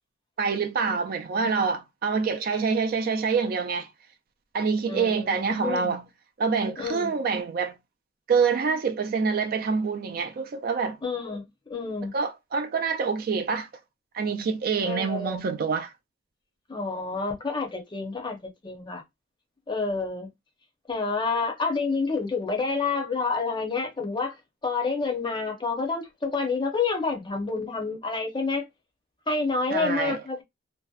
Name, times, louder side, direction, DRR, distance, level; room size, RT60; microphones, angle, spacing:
voice 1, 0.4-3.9 4.5-6.0 6.4-7.7 8.3-11.0 12.1-13.7 14.1-15.9 29.7-30.2, right 5 dB, 50° right, 0.4 m, -26 dB
voice 2, 4.9-5.9 6.8-7.1 11.0-12.1 14.8-15.4 16.7-19.0 19.7-20.3 20.9-24.4 24.6-28.7 29.3-30.4, left 4 dB, 25° left, 0.6 m, -29 dB
2.6 x 2.1 x 2.3 m
head